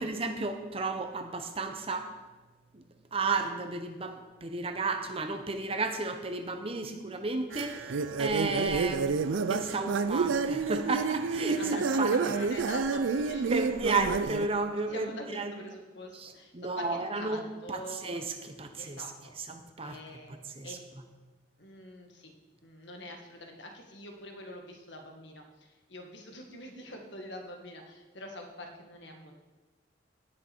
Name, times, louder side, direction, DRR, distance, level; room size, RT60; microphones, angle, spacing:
voice 1, 0.0-2.1 2.7-2.8 3.1-12.1 13.5-15.5 16.1-17.4 17.7-19.0 19.5-20.0 20.6-20.8, right 3 dB, 30° right, 6 dB, 0.8 m, -33 dB
sound 1, 7.5-14.5, right 4 dB, 80° right, 0.5 m, -29 dB
voice 2, 11.4-13.5 14.7-18.2 18.8-19.4 19.8-20.8 21.6-22.3 22.6-29.3, left 1 dB, 65° left, 3 dB, 1.7 m, -44 dB
17.5 x 6.3 x 4.5 m, 1.2 s
head